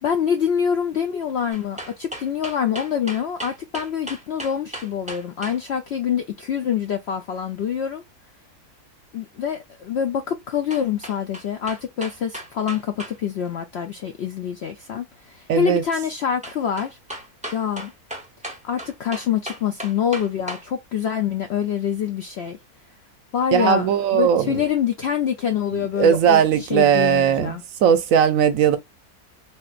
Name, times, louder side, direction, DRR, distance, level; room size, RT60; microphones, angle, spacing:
voice 1, 0.0-8.0 9.1-17.0 17.5-17.9 18.6-22.6 23.3-27.6, left 8 dB, 70° left, 0.6 m, -25 dB
sound 1, 1.5-5.6 10.7-13.2 13.4-13.5 16.4-20.7 21.1-21.2, right 1 dB, 10° right, 0.5 m, -36 dB
voice 2, 15.5-15.8 23.5-24.7 25.7-28.8, right 8 dB, 70° right, 0.9 m, -18 dB
3.5 x 2.6 x 2.4 m
omnidirectional pair, 1.6 m